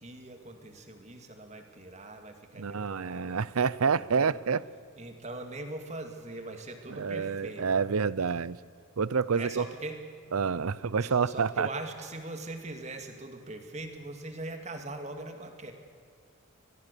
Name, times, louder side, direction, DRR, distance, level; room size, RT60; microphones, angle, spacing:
voice 1, 0.0-3.4 3.9-4.4 5.0-7.7 9.3-10.0 11.0-15.7, right 2 dB, 30° right, 6 dB, 2.2 m, -41 dB
voice 2, 2.6-4.6 6.9-8.6 9.0-9.7 10.3-11.7, right 5 dB, 90° right, 20 dB, 0.6 m, -28 dB
23.0 x 20.5 x 6.9 m, 2.3 s
head